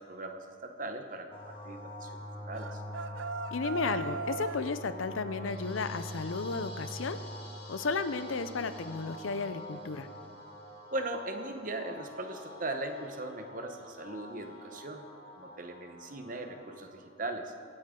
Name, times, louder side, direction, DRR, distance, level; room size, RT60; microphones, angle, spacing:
voice 1, 0.0-2.8 10.9-15.0 15.3-17.5, right 2 dB, 40° right, 5 dB, 1.0 m, -39 dB
sound 1, 1.3-16.9, left 1 dB, 25° left, 1.7 m, -45 dB
sound 2, 2.5-4.7, right 5 dB, 75° right, 0.4 m, -39 dB
voice 2, 3.5-7.2 7.7-10.1, left 4 dB, 80° left, 11 dB, 0.6 m, -33 dB
23.5 x 8.7 x 3.8 m, 2.4 s
head